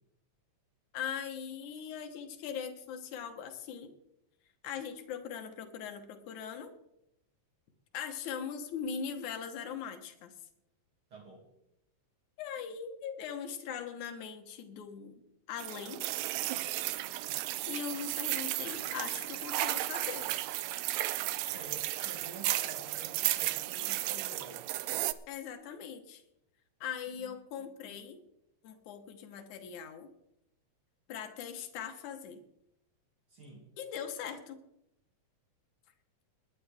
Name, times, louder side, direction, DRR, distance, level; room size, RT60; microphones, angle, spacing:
voice 1, 0.9-3.9 4.6-6.7 7.9-10.3 12.4-15.2 15.5-16.0 17.7-20.3 25.3-26.2 26.8-28.2 28.6-30.1 31.1-32.4 33.8-34.6, left 7 dB, 80° left, 5 dB, 2.6 m, -40 dB
voice 2, 11.1-11.5 21.5-24.7 33.3-33.7, right 2 dB, 45° right, -1 dB, 3.1 m, -49 dB
sound 1, 15.6-25.1, right 15 dB, 80° right, 1.8 m, -34 dB
21.0 x 10.0 x 3.5 m, 0.81 s
omnidirectional pair, 3.4 m